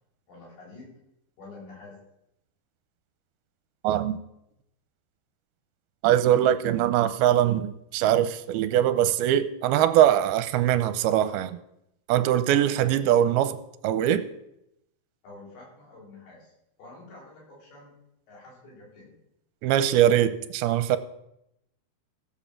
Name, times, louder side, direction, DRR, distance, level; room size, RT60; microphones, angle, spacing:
voice 1, 0.3-1.0 1.4-2.0 15.2-16.5 16.8-18.0 18.3-19.2, left 2 dB, 75° left, -4 dB, 8.0 m, -47 dB
voice 2, 3.8-4.2 6.0-11.6 12.1-13.6 13.8-14.3 19.6-21.0, right 11 dB, 80° right, 12 dB, 2.6 m, -22 dB
15.5 x 7.3 x 7.3 m, 0.80 s
omnidirectional pair, 4.6 m